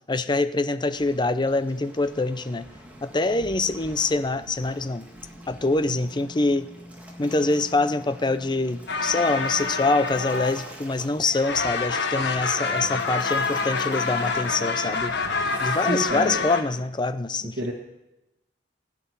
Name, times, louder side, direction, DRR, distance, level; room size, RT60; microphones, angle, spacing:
voice 1, 0.1-2.7 3.0-5.1 5.5-6.7 7.2-15.1 15.6-17.6, left 3 dB, 25° left, 12 dB, 0.6 m, -25 dB
Waves surf, 0.9-16.5, equal, 10° right, 2.0 m, -44 dB
sound 1, 8.9-11.0 11.2-16.6, left 4 dB, 65° left, 1.2 m, -27 dB
voice 2, 15.4-16.4 17.4-17.7, equal, 60° right, -1 dB, 1.8 m, -30 dB
15.5 x 6.1 x 9.6 m, 0.94 s
head